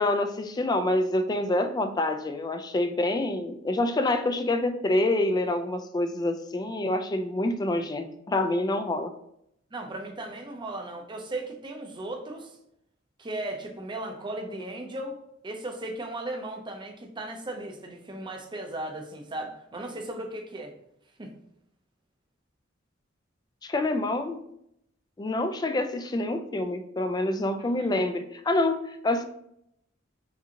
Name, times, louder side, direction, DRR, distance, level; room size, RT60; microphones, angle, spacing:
voice 1, 0.0-9.1 23.6-24.4 25.2-29.2, left 2 dB, 20° left, 7 dB, 0.3 m, -27 dB
voice 2, 9.7-12.6 13.2-15.2 15.4-20.7 21.2-21.3 27.6-27.9, right 1 dB, 25° right, 3 dB, 0.6 m, -36 dB
5.0 x 2.7 x 2.8 m, 0.76 s
head